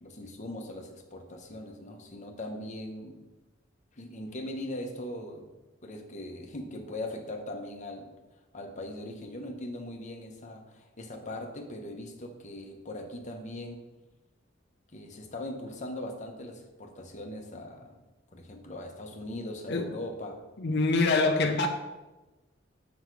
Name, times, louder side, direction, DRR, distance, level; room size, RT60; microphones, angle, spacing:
voice 1, 0.0-3.2 4.0-5.5 5.8-8.1 8.5-13.8 14.9-18.0 18.3-20.4 20.7-20.8, left 1 dB, 40° left, 3 dB, 1.0 m, -40 dB
voice 2, 20.6-21.7, left 3 dB, 60° left, 4 dB, 0.6 m, -25 dB
6.4 x 5.2 x 4.7 m, 1.1 s
head